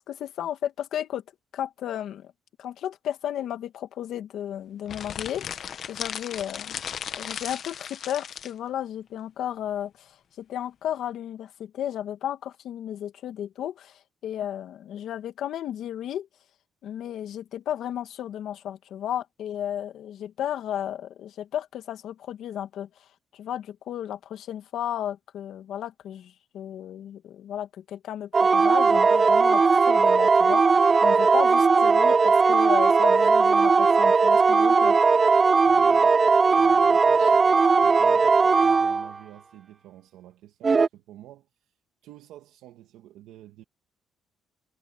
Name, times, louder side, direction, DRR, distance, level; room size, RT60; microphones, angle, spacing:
voice 1, 0.1-1.2 1.5-2.3 2.6-6.8 7.1-16.3 16.8-23.1 23.3-35.0 37.2-37.3, left 10 dB, 70° left, 2.0 m, -34 dB
sound 1, 4.9-8.5, left 8 dB, 55° left, 1.2 m, -36 dB
sound 2, 28.3-39.2 40.6-40.9, right 4 dB, 30° right, 0.3 m, -18 dB
voice 2, 35.7-36.2 36.6-37.4 37.6-41.7 42.0-43.6, right 13 dB, 85° right, 2.3 m, -49 dB
cardioid pair, 100°, 0 cm